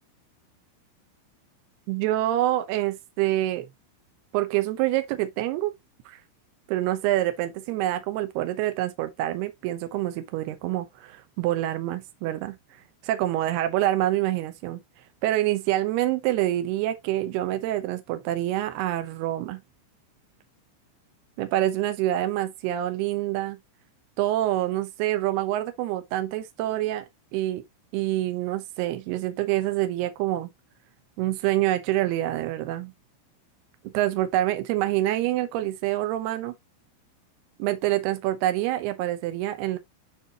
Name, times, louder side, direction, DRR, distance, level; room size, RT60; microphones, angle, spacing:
voice 1, 1.9-3.7 4.3-5.7 6.1-6.2 6.7-12.6 13.0-14.8 15.2-19.6 21.4-23.6 24.2-27.1 27.3-27.6 27.9-30.5 31.2-32.9 33.9-36.6 37.6-39.8, right 14 dB, 85° right, 2.3 m, -26 dB
9.6 x 4.6 x 2.8 m
omnidirectional pair, 5.8 m